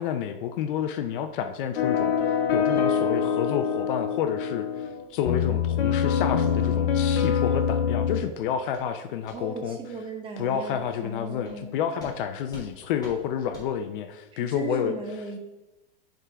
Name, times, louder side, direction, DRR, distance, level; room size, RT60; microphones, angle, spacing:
voice 1, 0.0-2.1 2.5-9.8 10.4-14.9, left 8 dB, 60° left, 8 dB, 0.6 m, -29 dB
sound 1, 1.8-8.2, left 7 dB, 85° left, 1.1 m, -24 dB
sound 2, 5.4-5.5 5.9-6.1 6.5-6.6 7.0-7.1 7.6-7.7 8.1-8.3 8.7-8.9 9.2-9.4 9.8-9.9 10.4-10.5 10.9-11.0 11.4-11.6 12.0-12.2 12.5-12.7 13.0-13.2 13.5-13.7, equal, 10° left, 1.5 m, -47 dB
voice 2, 9.3-11.7 14.3-15.4, right 4 dB, 15° right, 2 dB, 0.8 m, -37 dB
5.4 x 3.8 x 4.7 m, 1.0 s
supercardioid pair, 155°, 29 cm